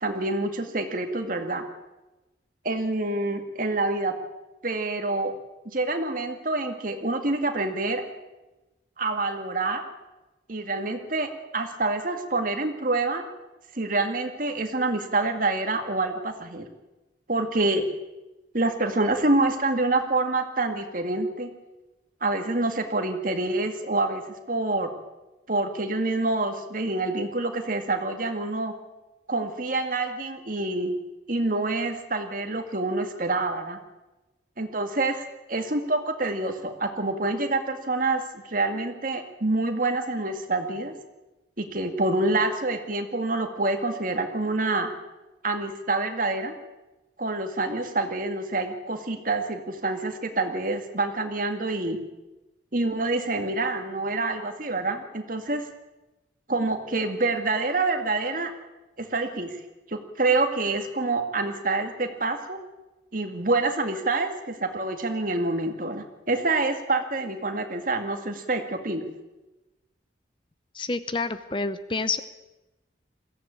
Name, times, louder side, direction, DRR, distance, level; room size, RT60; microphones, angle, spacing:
voice 1, 0.0-1.6 2.6-4.1 4.6-5.3 5.7-8.0 9.0-9.8 10.5-13.2 13.7-16.7 17.3-17.8 18.5-21.5 22.2-24.2 24.5-24.9 25.5-28.7 29.3-30.9 31.3-33.8 34.6-40.9 41.6-44.9 45.4-46.5 47.2-52.0 52.7-55.7 56.5-58.5 59.0-59.6 59.9-62.6 63.1-69.0, right 2 dB, 45° right, 6 dB, 2.1 m, -27 dB
voice 2, 70.7-72.2, left 3 dB, 25° left, 13 dB, 0.7 m, -28 dB
21.5 x 15.5 x 8.7 m, 1.1 s
head